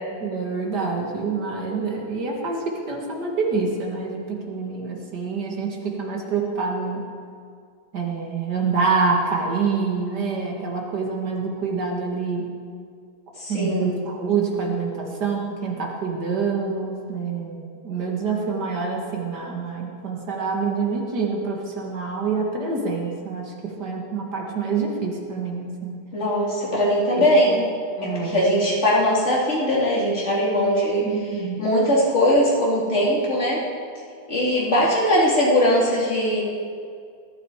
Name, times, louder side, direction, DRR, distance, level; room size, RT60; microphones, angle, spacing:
voice 1, 0.2-7.1 7.9-12.5 13.5-26.0 27.1-27.6 28.0-28.4 31.0-31.6, right 4 dB, 75° right, 0 dB, 2.7 m, -26 dB
voice 2, 13.4-14.0 26.1-27.7 28.0-31.0 31.6-33.6 34.3-36.4, equal, 40° left, -5 dB, 3.6 m, -20 dB
20.5 x 11.5 x 5.0 m, 2.2 s
omnidirectional pair, 1.8 m